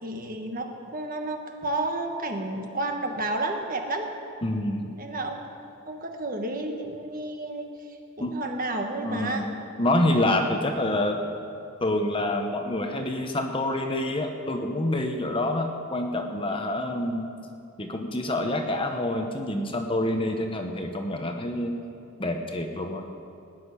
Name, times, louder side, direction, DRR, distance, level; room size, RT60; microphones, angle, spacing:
voice 1, 0.0-4.1 5.0-5.4 5.9-7.7 8.2-9.4, right 2 dB, 40° right, 3 dB, 1.4 m, -31 dB
voice 2, 4.4-4.9 8.2-8.3 9.0-9.5 9.8-11.2 11.8-17.3 17.8-21.8 22.2-23.0, left 1 dB, 25° left, 4 dB, 1.0 m, -27 dB
18.0 x 6.9 x 9.8 m, 2.5 s
head